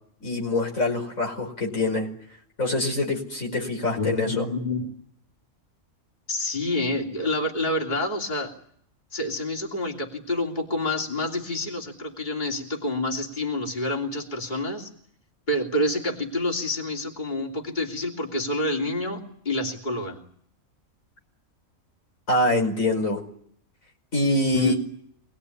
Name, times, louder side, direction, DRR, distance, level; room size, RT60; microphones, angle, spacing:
voice 1, 0.2-2.1 2.6-4.5 22.3-23.2 24.1-24.8, left 1 dB, 80° left, 1 dB, 5.7 m, -24 dB
voice 2, 4.0-4.9 6.3-8.5 9.1-14.9 15.5-20.2 24.5-24.8, left 1 dB, 35° left, 0 dB, 3.2 m, -28 dB
26.0 x 20.0 x 9.8 m, 0.66 s
omnidirectional pair, 1.4 m